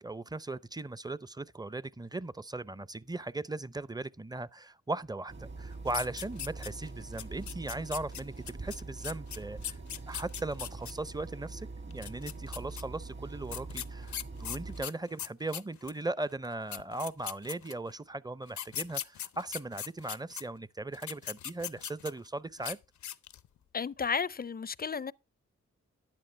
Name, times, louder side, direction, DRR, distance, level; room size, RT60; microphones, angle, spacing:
voice 1, 0.0-9.8 10.1-11.7 11.9-14.1 14.4-22.8, right 2 dB, 15° right, 0.6 m, -38 dB
sound 1, 5.3-14.9, right 3 dB, 40° right, 1.5 m, -44 dB
sound 2, 5.9-6.9 7.2-10.9 11.9-12.8 13.5-16.0 16.4-16.5 16.7-17.9 18.5-20.4 20.9-22.3 22.6-22.8 23.0-23.5, left 10 dB, 80° left, 0.6 m, -39 dB
voice 2, 23.7-25.1, left 6 dB, 30° left, 0.5 m, -33 dB
12.0 x 9.9 x 3.3 m
cardioid pair, 40°, 29 cm